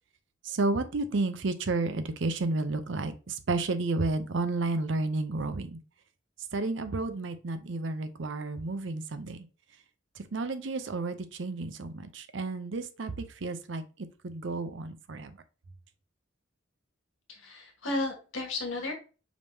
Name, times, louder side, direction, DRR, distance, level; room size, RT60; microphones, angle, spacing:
voice 1, 0.4-5.8 6.5-9.4 10.2-13.8 14.2-15.4, right 3 dB, 65° right, 9 dB, 0.6 m, -31 dB
voice 2, 17.3-18.9, left 2 dB, 75° left, 2 dB, 1.4 m, -33 dB
5.0 x 3.5 x 2.7 m, 0.33 s
head